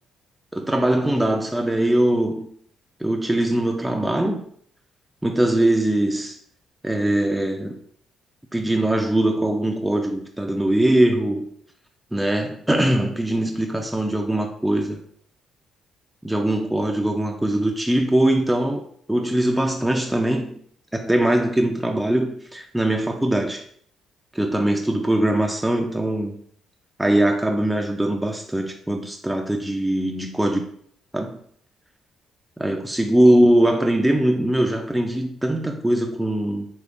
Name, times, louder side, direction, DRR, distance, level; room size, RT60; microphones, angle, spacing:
voice 1, 0.5-2.5 3.0-4.4 5.2-6.4 6.8-7.8 8.5-11.5 12.1-15.0 16.2-20.6 20.9-23.6 24.3-26.4 27.0-30.7 31.1-31.4 32.6-36.7, right 1 dB, 5° right, 2 dB, 0.3 m, -21 dB
3.5 x 3.0 x 2.5 m, 0.62 s
cardioid pair, 90°, 0 cm